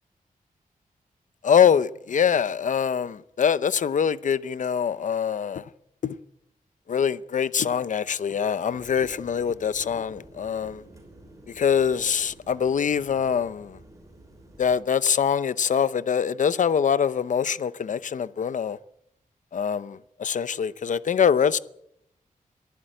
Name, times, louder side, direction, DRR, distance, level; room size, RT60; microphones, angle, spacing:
voice 1, 1.4-5.6 6.0-6.2 6.9-10.8 11.6-13.8 14.6-18.8 19.5-21.6, left 7 dB, 60° left, 0.7 m, -24 dB
sound 1, 8.7-14.8, right 1 dB, 20° right, 5.6 m, -50 dB
23.0 x 14.0 x 9.0 m
wide cardioid pair, 155°, 14 cm